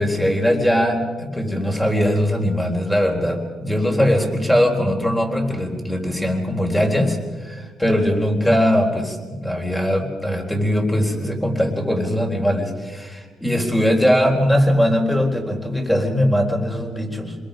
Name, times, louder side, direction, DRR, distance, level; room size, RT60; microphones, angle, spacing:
voice 1, 0.0-17.3, equal, 5° left, 2 dB, 3.9 m, -20 dB
27.0 x 21.5 x 5.2 m, 1.4 s
cardioid pair, 90°, 0 cm